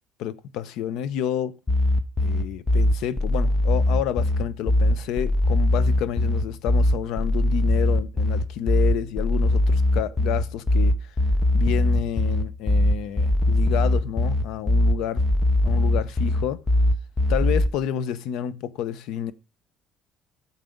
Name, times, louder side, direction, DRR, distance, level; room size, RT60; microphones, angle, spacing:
voice 1, 0.2-1.5 2.2-10.9 11.5-15.3 15.6-16.6 17.3-19.3, left 10 dB, 75° left, 0.8 m, -29 dB
sound 1, 1.7-17.7, left 1 dB, 10° left, 0.6 m, -21 dB
9.4 x 7.4 x 5.2 m
cardioid pair, 175°, 0 cm